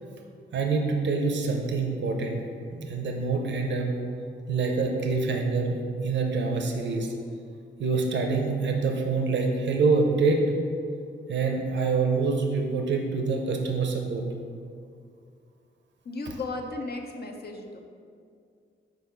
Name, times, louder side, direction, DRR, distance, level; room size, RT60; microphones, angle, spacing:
voice 1, 0.5-2.4 2.7-3.9 4.5-5.8 6.0-7.1 7.8-10.4 11.3-14.2, right 4 dB, 65° right, 2 dB, 0.7 m, -26 dB
voice 2, 16.1-17.8, left 2 dB, 50° left, 3 dB, 0.7 m, -35 dB
4.5 x 4.1 x 5.7 m, 2.3 s
cardioid pair, 80°, 20 cm